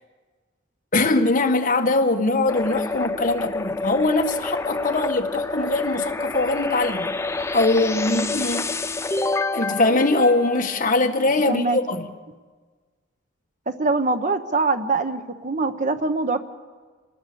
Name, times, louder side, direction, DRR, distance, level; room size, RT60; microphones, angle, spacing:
voice 1, 0.9-7.1 7.5-8.7 9.5-12.1, left 2 dB, 40° left, 1.8 m, -22 dB
sound 1, 2.5-11.1, left 3 dB, 15° left, 0.6 m, -28 dB
voice 2, 11.5-11.8 13.7-16.4, right 3 dB, 40° right, 1.0 m, -23 dB
28.0 x 19.5 x 7.0 m
head